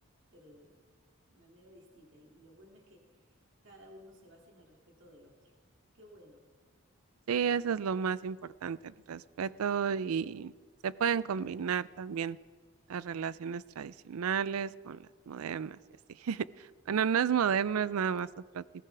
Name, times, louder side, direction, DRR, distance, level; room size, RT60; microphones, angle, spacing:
voice 1, 0.3-0.8 1.3-5.5 5.9-6.4 17.8-18.1, equal, 60° right, 0 dB, 2.6 m, -57 dB
voice 2, 7.3-10.5 10.8-12.4 12.9-15.8 16.2-18.3 18.5-18.6, right 7 dB, 90° right, 19 dB, 0.4 m, -32 dB
19.5 x 15.5 x 3.5 m, 1.5 s
head